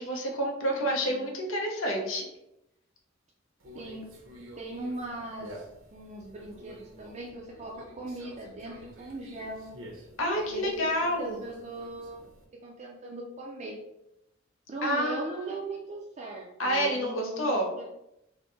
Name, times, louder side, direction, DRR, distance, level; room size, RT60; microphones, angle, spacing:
voice 1, 0.0-2.3 10.2-11.4 14.8-15.4 16.6-17.7, equal, 75° left, 1 dB, 0.8 m, -29 dB
voice 2, 0.8-1.3 3.7-4.1 4.6-5.5 5.9-9.7 10.3-12.2 12.5-13.8 14.7-17.9, right 2 dB, 35° right, -3 dB, 0.4 m, -39 dB
Conversation, 3.6-12.4, equal, 80° right, 0.8 m, -50 dB
3.5 x 2.1 x 3.9 m, 0.86 s
head